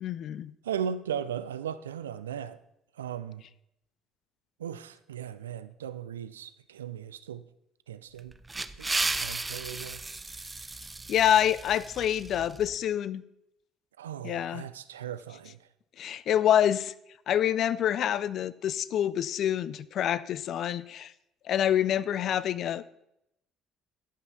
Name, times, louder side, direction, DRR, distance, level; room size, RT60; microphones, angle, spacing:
voice 1, 0.0-0.5 11.1-13.2 14.2-14.6 16.0-16.9 17.3-21.1 21.5-22.9, left 10 dB, 60° left, 0.4 m, -27 dB
voice 2, 0.6-2.6 3.0-3.4 4.6-7.4 7.9-8.3 8.8-10.0 14.0-15.6, right 8 dB, 90° right, 0.4 m, -37 dB
sound 1, 8.2-12.7, right 2 dB, 20° right, 0.7 m, -35 dB
12.0 x 5.5 x 6.0 m
hypercardioid pair, 55°, 0 cm